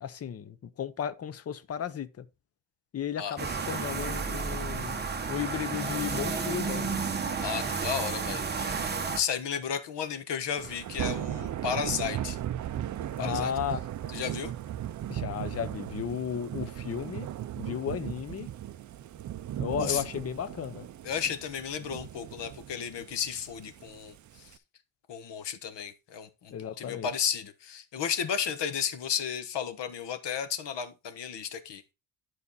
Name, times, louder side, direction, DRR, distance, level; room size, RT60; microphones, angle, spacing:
voice 1, 0.0-2.3 2.9-5.0 5.3-7.0 13.2-13.8 15.1-17.3 17.6-18.5 19.6-20.9 26.5-27.1, left 8 dB, 30° left, 0.6 m, -34 dB
sound 1, 3.4-9.2, right 5 dB, 20° right, 0.9 m, -32 dB
voice 2, 7.4-8.9 9.1-12.4 13.2-13.5 14.1-14.5 19.8-20.0 21.0-24.1 25.1-31.8, left 8 dB, 60° left, 1.3 m, -33 dB
Thunder / Rain, 10.6-24.6, right 11 dB, 40° right, 0.4 m, -37 dB
11.0 x 4.9 x 4.1 m
cardioid pair, 170°, 48 cm